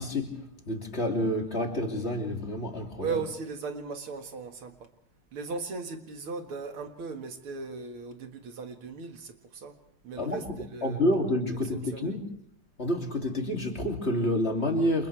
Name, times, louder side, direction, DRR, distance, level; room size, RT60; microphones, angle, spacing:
voice 1, 0.0-3.2 10.2-12.2 12.8-15.1, left 1 dB, 30° left, 3.1 m, -29 dB
voice 2, 3.0-4.9 5.3-9.8 10.0-11.0 11.9-12.1, right 4 dB, 90° right, 2.8 m, -37 dB
29.0 x 27.5 x 3.4 m
omnidirectional pair, 2.3 m